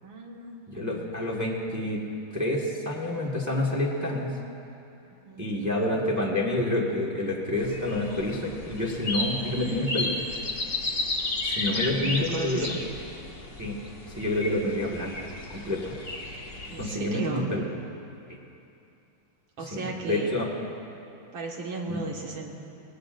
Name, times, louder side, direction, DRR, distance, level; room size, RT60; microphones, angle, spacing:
voice 1, 0.0-1.1 5.2-5.5 11.7-12.8 15.0-15.1 16.7-17.5 19.6-20.3 21.3-22.5, right 3 dB, 70° right, -2 dB, 2.4 m, -35 dB
voice 2, 0.7-2.0 2.3-4.3 5.4-10.1 11.4-12.7 13.6-13.8 14.1-15.1 15.5-15.9 16.8-17.6 18.3-18.4 19.7-20.5 21.9-22.0, left 1 dB, 10° right, -3 dB, 1.4 m, -28 dB
sound 1, 7.6-16.9, left 2 dB, 40° left, 1.7 m, -33 dB
23.5 x 19.0 x 2.6 m, 2.7 s
omnidirectional pair, 2.2 m